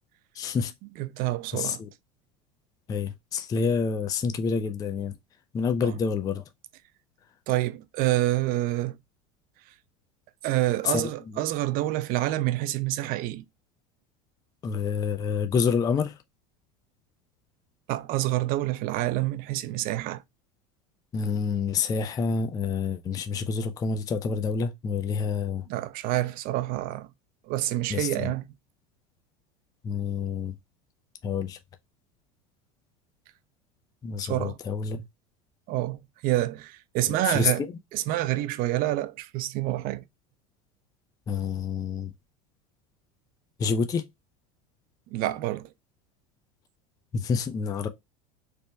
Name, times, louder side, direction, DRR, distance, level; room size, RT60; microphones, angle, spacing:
voice 1, 0.4-0.7 1.5-1.9 2.9-5.1 5.5-6.4 10.8-11.4 14.6-16.1 21.1-25.7 27.9-28.3 29.8-30.5 31.2-31.6 34.0-35.0 37.1-37.7 41.3-42.1 43.6-44.0 47.1-47.9, left 5 dB, 20° left, 0.3 m, -28 dB
voice 2, 1.0-1.8 5.8-5.9 7.5-9.0 10.4-13.4 17.9-20.2 25.7-27.1 27.5-28.4 34.2-34.6 35.7-37.7 37.9-40.0 45.1-45.7, right 15 dB, 50° right, 0.4 m, -27 dB
3.3 x 2.1 x 4.0 m
supercardioid pair, 100°, 19 cm